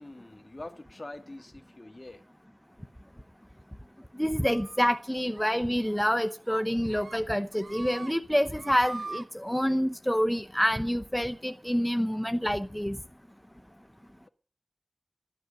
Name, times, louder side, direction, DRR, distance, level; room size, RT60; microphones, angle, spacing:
voice 1, 0.0-2.2, left 2 dB, 40° left, 1.7 m, -44 dB
voice 2, 4.2-13.0, equal, 5° left, 0.8 m, -27 dB
sound 1, 4.4-5.0 5.4-5.6 5.9-6.1 6.5-7.2 7.5-8.1 8.4-9.2, right 3 dB, 90° right, 1.1 m, -42 dB
13.5 x 11.0 x 6.5 m
wide cardioid pair, 40°, 0 cm